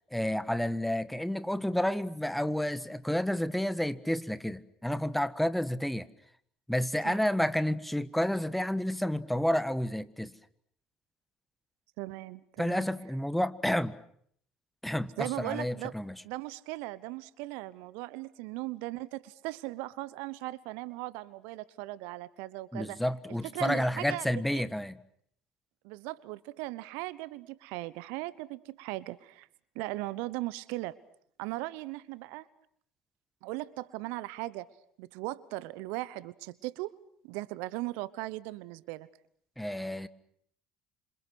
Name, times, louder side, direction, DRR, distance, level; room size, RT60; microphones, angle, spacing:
voice 1, 0.1-6.1 6.7-10.3 12.6-14.0 14.8-16.2 22.7-25.0 39.6-40.1, left 1 dB, 5° left, 1.4 m, -30 dB
voice 2, 12.0-12.8 15.2-15.9 16.2-23.0 23.5-24.6 25.8-29.5 29.7-31.0 31.4-32.5 33.4-34.7 35.0-36.9 37.2-39.1, right 19 dB, 65° right, 1.0 m, -38 dB
27.5 x 27.0 x 6.3 m
hypercardioid pair, 60°, 3 cm